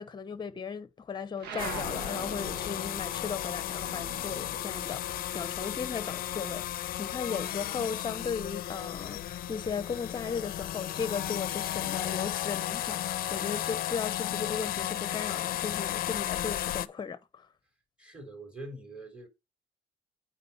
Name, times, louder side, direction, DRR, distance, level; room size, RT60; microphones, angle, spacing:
voice 1, 0.0-17.5, left 6 dB, 25° left, 0.9 m, -36 dB
sound 1, 1.4-6.3 6.6-8.0, right 6 dB, 75° right, 1.3 m, -44 dB
sound 2, 1.6-16.9, left 12 dB, 60° left, 0.6 m, -34 dB
voice 2, 18.0-19.3, right 1 dB, 5° right, 3.5 m, -44 dB
8.7 x 4.6 x 4.1 m
cardioid pair, 110°, 17 cm